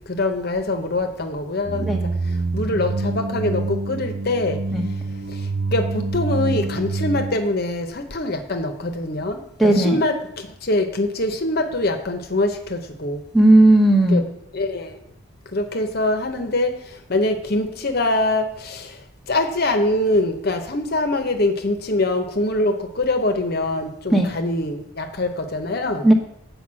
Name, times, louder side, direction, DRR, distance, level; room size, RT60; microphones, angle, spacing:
voice 1, 0.1-1.9 2.5-4.6 5.7-13.2 14.1-14.9 15.5-16.7 17.1-19.0 19.3-26.0, left 2 dB, 50° left, 7 dB, 0.9 m, -23 dB
sound 1, 1.6-7.4, right 3 dB, 75° right, 0.6 m, -26 dB
voice 2, 9.6-10.0 13.3-14.2 24.1-24.3 26.0-26.1, right 1 dB, ahead, 0 dB, 1.0 m, -15 dB
7.8 x 5.2 x 7.4 m, 0.77 s
head